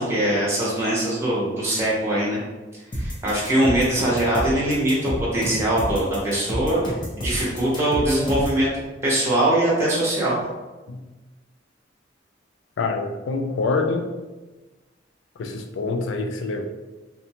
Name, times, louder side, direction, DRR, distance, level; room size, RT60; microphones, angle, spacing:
voice 1, 0.0-2.4 2.9-6.8 7.2-8.7 9.0-10.4, right 1 dB, 15° right, -6 dB, 0.7 m, -22 dB
sound 1, 2.9-8.6, equal, 25° left, 0.5 m, -29 dB
voice 2, 12.8-14.2 15.4-16.6, left 3 dB, 80° left, 5 dB, 0.3 m, -26 dB
2.6 x 2.1 x 2.8 m, 1.2 s
head